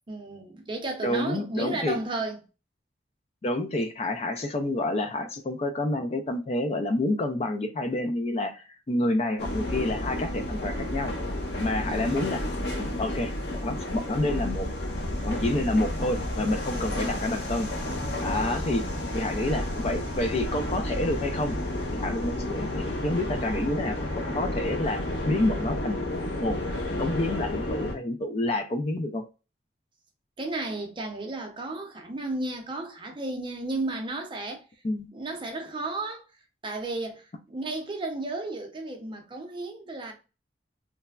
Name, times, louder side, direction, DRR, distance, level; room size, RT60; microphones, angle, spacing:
voice 1, 0.1-2.4 11.8-12.5 16.9-17.6 18.3-19.2 30.4-34.6 35.1-36.2 36.6-40.1, right 2 dB, 30° right, 0.6 m, -34 dB
voice 2, 1.0-2.0 3.4-11.1 11.6-12.4 12.8-14.7 15.2-17.7 18.2-21.6 21.9-26.0 26.4-26.6 27.0-29.2 34.8-35.1, left 1 dB, 35° left, 0.4 m, -28 dB
sound 1, 9.4-28.0, left 1 dB, 65° left, 0.7 m, -31 dB
3.2 x 2.1 x 2.3 m
head